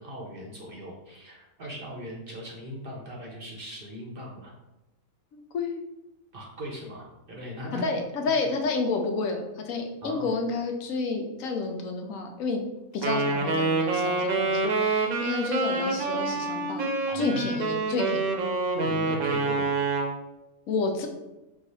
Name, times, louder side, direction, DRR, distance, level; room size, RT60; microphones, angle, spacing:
voice 1, 0.0-4.5 6.3-8.0 10.0-10.3 17.1-17.4 18.7-19.8, equal, 50° right, -2 dB, 0.8 m, -39 dB
voice 2, 5.3-5.8 7.7-12.6 12.9-16.9 17.1-18.3 20.7-21.1, left 4 dB, 75° left, 4 dB, 1.0 m, -30 dB
Wind instrument woodwind instrument, 13.0-20.1, right 3 dB, 75° right, 1.1 m, -27 dB
4.6 x 2.4 x 4.0 m, 0.99 s
omnidirectional pair, 1.5 m